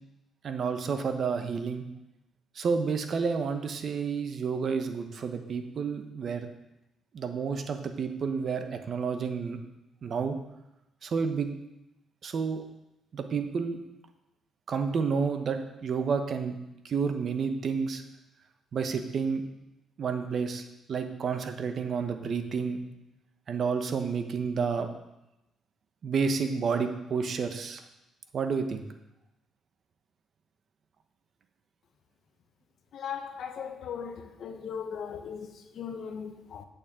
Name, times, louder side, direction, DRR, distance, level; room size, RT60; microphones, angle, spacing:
voice 1, 0.4-1.9 2.5-6.5 7.1-9.6 10.0-10.4 11.0-11.5 12.2-12.6 13.1-13.8 14.7-16.6 16.8-18.0 18.7-19.4 20.0-22.8 23.5-24.9 26.0-27.8 28.3-28.9, right 5 dB, 55° right, 1.0 m, -30 dB
voice 2, 32.9-36.6, left 7 dB, 65° left, 0.9 m, -38 dB
8.6 x 8.3 x 3.7 m
cardioid pair, 90°, 0 cm